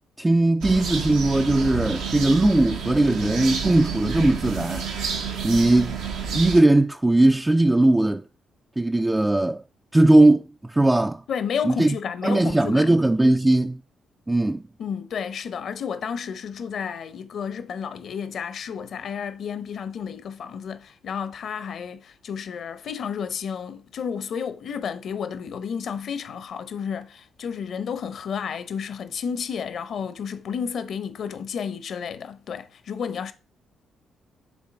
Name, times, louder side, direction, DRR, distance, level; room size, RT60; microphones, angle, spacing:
voice 1, 0.2-4.9 5.4-6.0 6.3-8.2 8.8-9.6 9.9-11.2 11.6-12.0 12.2-13.8 14.3-14.6, right 2 dB, 15° right, 0.4 m, -19 dB
sound 1, 0.6-6.6, right 6 dB, 80° right, 1.1 m, -29 dB
voice 2, 11.3-12.9 14.8-33.3, left 7 dB, 60° left, 0.8 m, -31 dB
6.9 x 3.7 x 5.9 m
hypercardioid pair, 50°, 0 cm